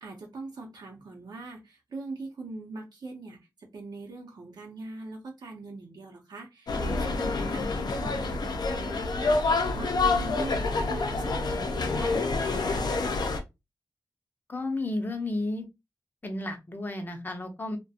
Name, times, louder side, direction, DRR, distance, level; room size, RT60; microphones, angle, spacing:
voice 1, 0.0-12.9, right 3 dB, 75° right, 0.7 m, -42 dB
sound 1, 6.7-13.4, left 3 dB, 75° left, 0.5 m, -27 dB
voice 2, 14.5-15.7 16.2-17.8, left 2 dB, 25° left, 0.6 m, -32 dB
2.4 x 2.1 x 2.7 m
wide cardioid pair, 125°, 7 cm